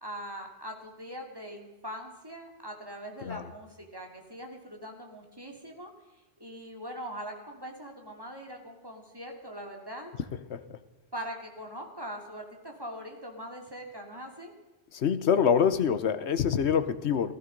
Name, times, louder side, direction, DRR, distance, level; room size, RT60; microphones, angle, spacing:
voice 1, 0.0-5.9 6.4-10.1 11.1-14.5, equal, 20° right, 2 dB, 2.7 m, -42 dB
voice 2, 14.9-17.3, left 7 dB, 90° left, 12 dB, 1.2 m, -26 dB
16.0 x 15.0 x 5.3 m, 1.1 s
omnidirectional pair, 1.1 m